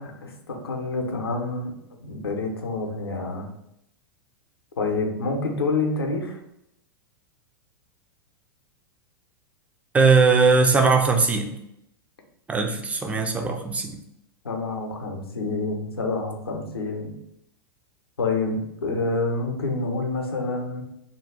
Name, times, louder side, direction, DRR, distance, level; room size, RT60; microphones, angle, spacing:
voice 1, 0.0-1.7 2.0-3.5 4.8-6.4 14.4-17.1 18.2-20.8, left 3 dB, 85° left, 2 dB, 0.6 m, -27 dB
voice 2, 9.9-11.5 12.5-14.0, right 4 dB, 10° right, 4 dB, 0.4 m, -19 dB
2.6 x 2.3 x 3.3 m, 0.80 s
figure-of-eight pair, 100°, 13 cm